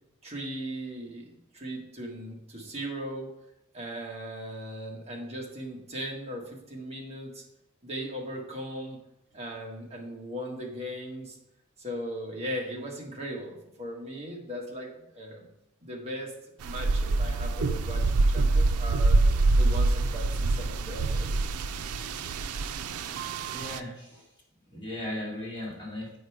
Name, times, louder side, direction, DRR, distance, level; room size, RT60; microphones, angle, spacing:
voice 1, 0.2-3.3 3.7-7.4 7.8-9.0 9.3-11.4 11.8-15.5 15.8-16.3 16.6-19.2 19.6-21.4, equal, 30° right, -1 dB, 1.6 m, -38 dB
sound 1, 16.6-23.8, right 3 dB, 85° right, 0.4 m, -25 dB
voice 2, 22.9-24.2 24.7-26.2, left 1 dB, 20° left, -5 dB, 2.5 m, -38 dB
8.4 x 5.3 x 4.9 m, 0.84 s
head